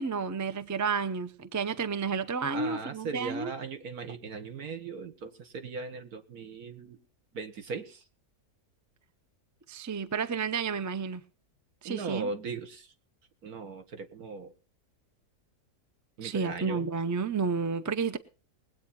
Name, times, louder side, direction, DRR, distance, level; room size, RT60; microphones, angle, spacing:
voice 1, 0.0-3.5 9.7-11.2 11.8-12.3 16.2-18.2, right 5 dB, 25° right, 0.3 m, -31 dB
voice 2, 2.5-7.0 7.3-8.0 11.8-12.9 13.4-14.5 16.2-16.9, right 4 dB, 75° right, 1.9 m, -38 dB
21.0 x 8.6 x 4.2 m
omnidirectional pair, 1.6 m